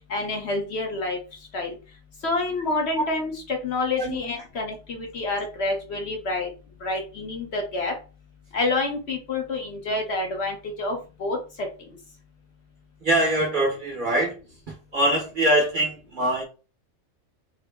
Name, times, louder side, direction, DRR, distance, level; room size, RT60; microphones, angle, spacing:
voice 1, 0.1-1.2 1.5-1.7 2.2-6.5 6.8-7.9 8.5-11.7, left 2 dB, 55° left, 1.0 m, -28 dB
voice 2, 13.0-14.4 14.9-16.4, right 1 dB, 45° right, 0.8 m, -23 dB
3.7 x 2.0 x 3.4 m
omnidirectional pair, 1.4 m